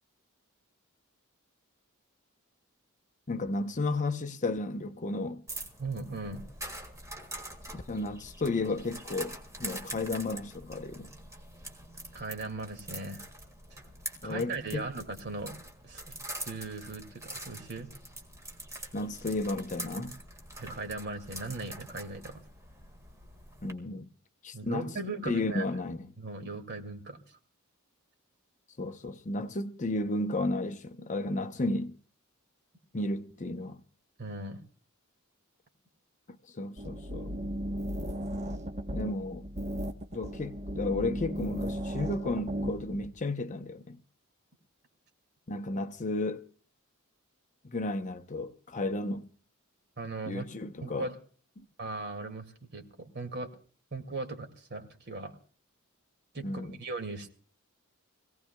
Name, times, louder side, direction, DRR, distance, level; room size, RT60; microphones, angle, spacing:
voice 1, 3.3-5.4 7.7-9.3 9.6-11.1 14.2-14.8 18.9-20.2 23.6-24.1 24.4-24.9 25.3-26.1 28.8-31.9 32.9-33.8 36.3-37.3 38.9-39.5 40.1-44.0 45.5-46.4 47.7-49.3 50.3-51.1 51.6-51.7 56.4-56.8, left 2 dB, 35° left, 0.8 m, -33 dB
sound 1, 5.5-23.7, right 1 dB, 15° right, 1.9 m, -44 dB
voice 2, 5.8-6.5 12.1-13.2 14.2-15.6 15.8-17.9 20.6-22.4 24.5-25.7 26.2-27.2 34.2-34.6 50.0-50.5 50.8-51.1 51.8-52.5 52.7-53.5 53.9-55.3 56.3-57.3, right 3 dB, 50° right, 2.3 m, -38 dB
sound 2, 36.8-43.1, equal, 35° right, 1.1 m, -35 dB
24.5 x 17.0 x 2.3 m
head